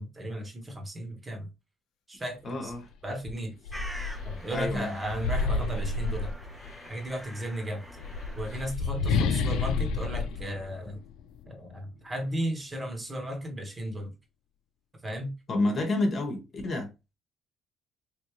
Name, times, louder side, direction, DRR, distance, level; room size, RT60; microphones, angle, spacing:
voice 1, 0.0-1.5 2.1-2.7 3.0-3.6 4.2-6.3 6.8-7.8 8.4-11.0 11.5-14.1 15.0-15.3, right 1 dB, 20° right, 1.1 m, -35 dB
voice 2, 2.4-2.9 4.5-4.9 15.5-16.9, left 2 dB, 40° left, 1.1 m, -29 dB
sound 1, 2.7-2.8 3.2-6.9 7.8-11.5, left 4 dB, 80° left, 0.4 m, -30 dB
sound 2, 3.7-8.7, equal, ahead, 0.6 m, -46 dB
3.2 x 2.7 x 3.1 m
cardioid pair, 90°, 0 cm